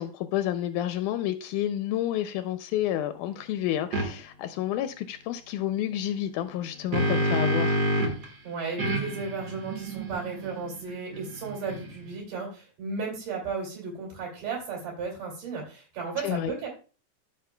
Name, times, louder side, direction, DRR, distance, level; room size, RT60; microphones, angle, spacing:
voice 1, 0.0-7.8 16.2-16.5, left 12 dB, 85° left, 2.0 m, -30 dB
sound 1, 3.9-4.1 6.5-8.3 8.8-12.1, right 1 dB, 45° right, 1.4 m, -28 dB
voice 2, 8.4-16.7, right 4 dB, 85° right, 4.2 m, -34 dB
14.0 x 6.2 x 2.2 m
omnidirectional pair, 3.6 m